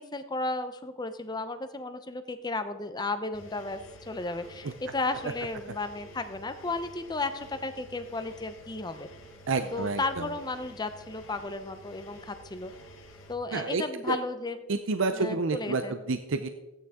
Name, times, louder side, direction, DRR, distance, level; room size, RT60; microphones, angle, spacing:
voice 1, 0.0-9.1 9.7-12.7 13.3-14.6 15.1-15.9, left 3 dB, 20° left, 10 dB, 0.7 m, -34 dB
Engine, 3.3-13.3, equal, 70° left, 1.6 m, -50 dB
voice 2, 9.5-10.3 13.5-14.2 14.7-16.5, right 3 dB, 65° right, 8 dB, 0.6 m, -29 dB
15.0 x 9.3 x 3.7 m, 1.0 s
head